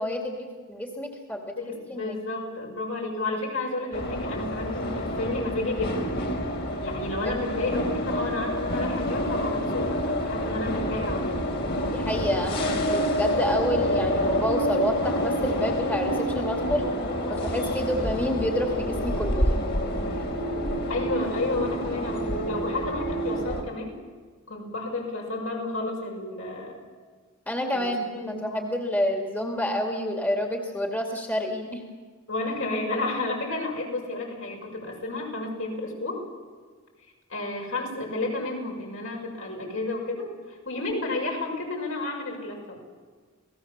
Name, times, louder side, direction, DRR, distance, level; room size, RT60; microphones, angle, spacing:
voice 1, 0.0-1.4 1.9-2.2 3.9-4.0 11.9-16.9 17.3-19.7 27.5-31.8, left 1 dB, 10° left, 1 dB, 2.3 m, -28 dB
voice 2, 1.6-6.1 6.8-11.4 20.9-24.0 24.5-26.8 27.7-28.6 32.3-36.2 37.3-42.8, left 2 dB, 65° left, 0 dB, 6.6 m, -31 dB
sound 1, 3.9-23.6, equal, 50° left, 3.8 m, -28 dB
28.5 x 18.5 x 7.4 m, 1.5 s
head